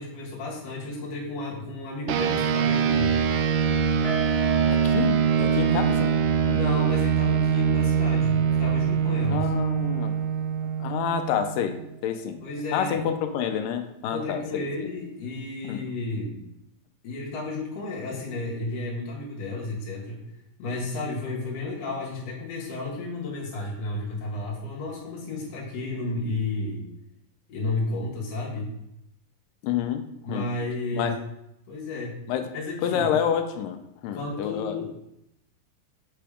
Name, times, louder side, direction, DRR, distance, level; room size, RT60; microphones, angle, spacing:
voice 1, 0.0-3.2 6.5-9.5 12.4-13.0 14.1-16.4 17.0-20.2 20.6-26.8 27.5-28.7 30.2-31.1 31.7-32.2 32.5-33.1 34.1-34.9, left 2 dB, 50° left, -3 dB, 2.8 m, -32 dB
sound 1, 2.1-11.8, right 7 dB, 80° right, 1.7 m, -23 dB
sound 2, 4.0-11.2 11.5-11.7 12.1-12.2, right 9 dB, 20° left, 1.7 m, -37 dB
voice 2, 4.7-6.1 6.5-6.6 9.3-10.1 10.8-12.4 12.7-14.7 15.7-15.8 29.6-30.5 30.9-31.1 32.3-32.5 32.8-34.8, left 8 dB, 90° left, 7 dB, 2.3 m, -28 dB
7.9 x 3.4 x 4.9 m, 0.82 s
omnidirectional pair, 3.9 m